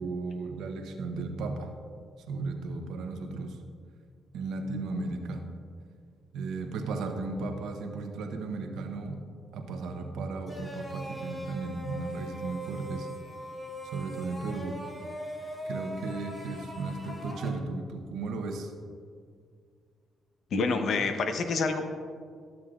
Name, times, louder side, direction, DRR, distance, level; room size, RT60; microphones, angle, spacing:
voice 1, 0.0-1.7 2.3-3.6 4.3-5.5 6.3-9.2 9.5-13.1 13.8-14.8 15.6-18.7, right 3 dB, 80° right, 5 dB, 0.9 m, -35 dB
sound 1, 10.5-17.5, equal, 20° left, 1.1 m, -40 dB
voice 2, 20.5-21.8, left 4 dB, 60° left, 6 dB, 0.8 m, -27 dB
13.0 x 7.4 x 2.5 m, 2.1 s
cardioid pair, 90°, 0 cm